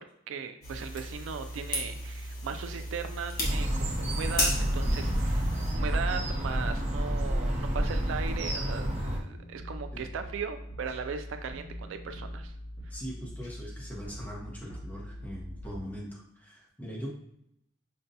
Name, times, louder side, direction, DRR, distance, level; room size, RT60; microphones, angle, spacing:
voice 1, 0.0-5.4 5.7-12.5, right 6 dB, 75° right, 8 dB, 0.3 m, -38 dB
sound 1, 0.6-5.7, left 1 dB, 50° left, 0.9 m, -34 dB
sound 2, 3.4-9.2, equal, 35° right, 0.8 m, -29 dB
voice 2, 4.8-5.2 9.9-10.1 12.9-17.1, equal, 10° left, -3 dB, 0.8 m, -41 dB
sound 3, 9.3-15.8, equal, 65° left, 1.2 m, -43 dB
5.2 x 2.2 x 2.7 m, 0.76 s
head